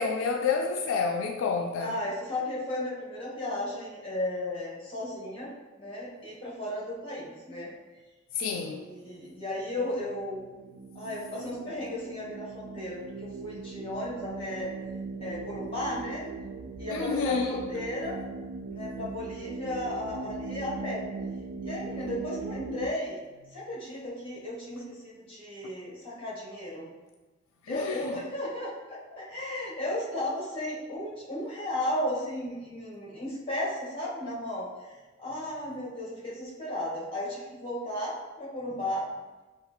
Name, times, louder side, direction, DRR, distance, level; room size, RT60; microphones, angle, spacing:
voice 1, 0.0-2.0 8.3-8.9 16.9-17.6 27.7-28.1, left 5 dB, 75° left, 2 dB, 0.3 m, -29 dB
voice 2, 1.8-5.5 5.8-7.7 8.5-10.5 10.9-14.7 15.2-16.2 16.8-18.2 18.7-21.1 21.6-26.9 27.7-39.0, left 1 dB, 25° left, -7 dB, 1.3 m, -35 dB
sound 1, 9.1-22.9, right 3 dB, 70° right, 0.3 m, -40 dB
5.4 x 2.4 x 2.9 m, 1.2 s
head